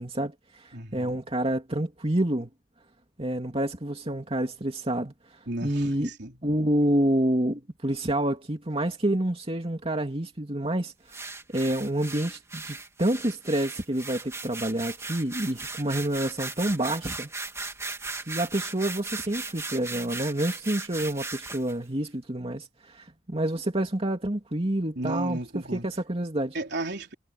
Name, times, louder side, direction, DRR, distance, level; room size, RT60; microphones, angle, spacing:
voice 1, 0.0-2.5 3.2-5.1 5.6-6.1 6.4-11.2 11.5-17.3 18.3-25.4 25.7-26.5, right 1 dB, 35° right, 2.6 m, -28 dB
voice 2, 0.7-1.1 5.5-6.4 25.0-25.9 26.5-27.1, right 1 dB, 65° right, 4.2 m, -34 dB
sound 1, 11.1-21.7, right 3 dB, 15° right, 2.5 m, -37 dB
head